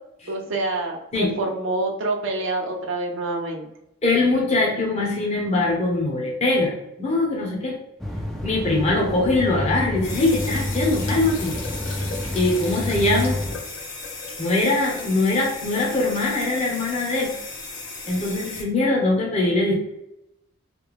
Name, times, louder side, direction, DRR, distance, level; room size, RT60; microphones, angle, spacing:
voice 1, 0.3-3.7, right 2 dB, 65° right, 1 dB, 0.6 m, -26 dB
voice 2, 4.0-7.8 8.4-11.5 12.3-13.4 14.4-17.3 18.1-19.7, left 2 dB, 30° left, -1 dB, 0.7 m, -22 dB
sound 1, 8.0-13.6, left 1 dB, ahead, 0.3 m, -29 dB
sound 2, 10.0-18.6, left 3 dB, 70° left, 0.8 m, -35 dB
3.3 x 2.2 x 3.2 m, 0.84 s
head